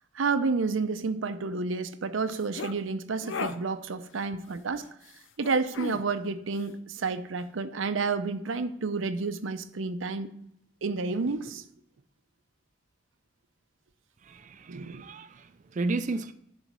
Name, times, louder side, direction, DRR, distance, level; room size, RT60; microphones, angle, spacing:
voice 1, 0.1-4.8 5.4-10.3 10.8-11.6 14.7-15.1, right 4 dB, 85° right, 0.6 m, -30 dB
sound 1, 2.3-2.7 3.2-3.6 5.4-6.0, left 4 dB, 85° left, 0.6 m, -35 dB
voice 2, 14.2-16.3, right 3 dB, 40° right, 0.4 m, -33 dB
10.5 x 4.1 x 6.1 m
head